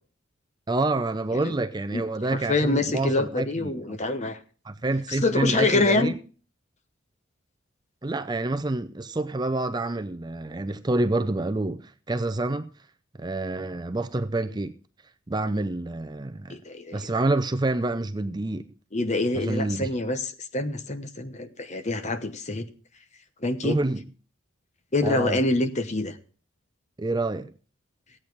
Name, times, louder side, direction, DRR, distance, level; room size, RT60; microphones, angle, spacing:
voice 1, 0.7-4.0 4.7-6.2 8.0-12.7 13.2-14.7 15.3-16.6 16.9-18.6 19.3-19.9 23.6-24.0 25.0-25.4 27.0-27.5, right 2 dB, 20° right, 0.5 m, -27 dB
voice 2, 2.3-4.4 5.1-6.1 16.5-17.1 18.9-22.7 23.4-23.8 24.9-26.1, left 2 dB, 35° left, 0.9 m, -26 dB
15.5 x 8.7 x 4.6 m
head